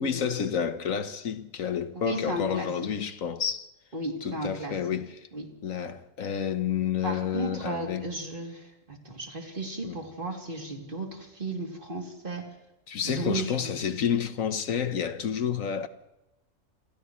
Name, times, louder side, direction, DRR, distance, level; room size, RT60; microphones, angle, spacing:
voice 1, 0.0-3.7 4.2-5.1 5.6-8.1 9.8-10.0 12.9-15.9, left 8 dB, 75° left, 1.5 m, -29 dB
voice 2, 1.9-2.9 3.9-5.0 5.3-5.6 7.0-12.6 13.0-13.9, right 2 dB, 40° right, 3.2 m, -35 dB
29.0 x 28.0 x 3.2 m
omnidirectional pair, 1.4 m